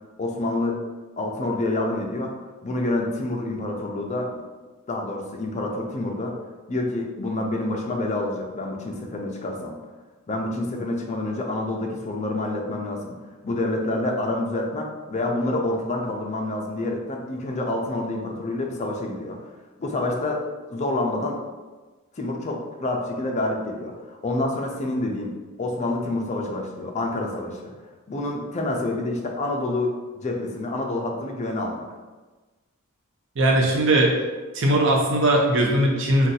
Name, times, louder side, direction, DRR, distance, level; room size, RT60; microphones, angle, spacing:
voice 1, 0.2-0.8 1.2-2.3 2.6-4.4 4.9-6.4 6.7-9.8 10.3-13.2 13.4-19.4 19.8-21.4 22.2-27.7 28.1-31.9, left 2 dB, 30° left, 1 dB, 0.4 m, -27 dB
voice 2, 33.4-34.2 34.5-36.3, right 1 dB, 60° right, 0 dB, 0.6 m, -19 dB
2.6 x 2.3 x 4.0 m, 1.2 s
head